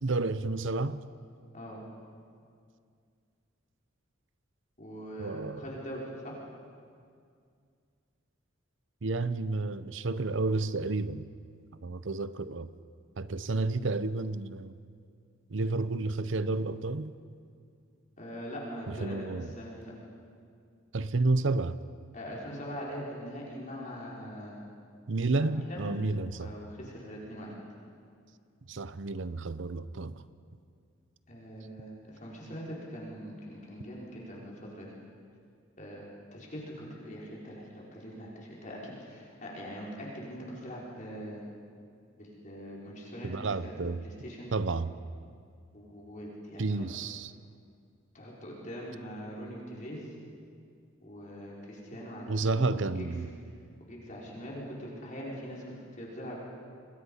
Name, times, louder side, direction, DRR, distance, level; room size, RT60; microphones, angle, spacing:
voice 1, 0.0-1.0 5.2-5.6 9.0-11.3 11.8-12.7 13.2-14.8 15.5-17.1 18.9-19.5 20.9-21.8 25.1-26.6 28.7-30.2 43.2-44.0 44.5-44.9 46.6-47.3 52.3-53.3, right 3 dB, 65° right, 15 dB, 0.8 m, -31 dB
voice 2, 1.5-1.8 4.8-6.4 18.2-19.3 19.6-19.9 22.1-24.6 25.4-25.9 26.4-27.5 31.3-35.0 35.8-36.1 36.3-41.4 42.2-43.7 44.0-44.5 45.7-46.8 48.1-50.1 51.0-53.1 53.9-56.4, equal, 40° left, -4 dB, 4.9 m, -42 dB
28.0 x 21.5 x 5.6 m, 2.2 s
head